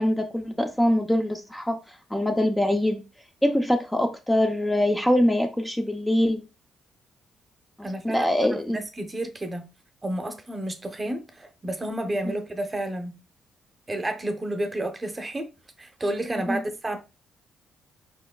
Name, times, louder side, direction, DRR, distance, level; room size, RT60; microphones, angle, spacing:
voice 1, 0.0-3.0 3.4-6.4 8.0-8.8 16.5-16.6, left 1 dB, 10° left, 0.6 m, -23 dB
voice 2, 7.8-9.7 10.0-13.2 13.9-15.5 15.8-17.0, right 1 dB, 25° right, 0.8 m, -31 dB
4.5 x 4.3 x 2.3 m
cardioid pair, 90°, 0 cm